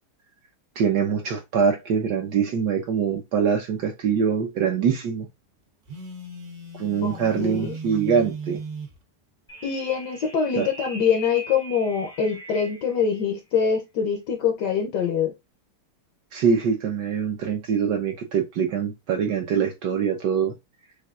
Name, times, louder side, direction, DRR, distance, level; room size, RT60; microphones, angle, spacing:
voice 1, 0.8-5.3 6.8-8.6 10.6-10.7 16.3-20.5, right 7 dB, 65° right, 1.2 m, -24 dB
Telephone, 5.9-9.0, right 3 dB, 80° right, 0.4 m, -37 dB
voice 2, 7.0-7.8 9.6-15.3, left 6 dB, 65° left, 1.1 m, -24 dB
sound 1, 9.5-13.0, equal, 5° left, 0.6 m, -41 dB
6.5 x 2.7 x 2.3 m
omnidirectional pair, 2.4 m